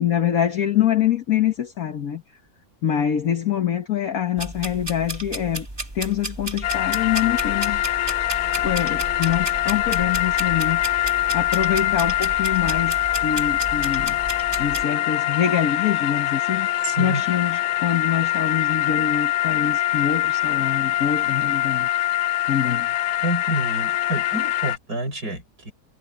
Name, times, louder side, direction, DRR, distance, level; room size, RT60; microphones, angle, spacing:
voice 1, 0.0-2.2 2.8-5.7 5.9-7.9 8.6-14.2 14.6-22.9, left 9 dB, 65° left, 1.6 m, -25 dB
sound 1, 4.4-14.8, right 1 dB, 15° right, 2.0 m, -33 dB
sound 2, 6.6-24.8, left 14 dB, 85° left, 1.1 m, -23 dB
voice 2, 16.8-17.2 23.2-25.7, right 1 dB, 85° right, 7.4 m, -28 dB
omnidirectional pair, 1.6 m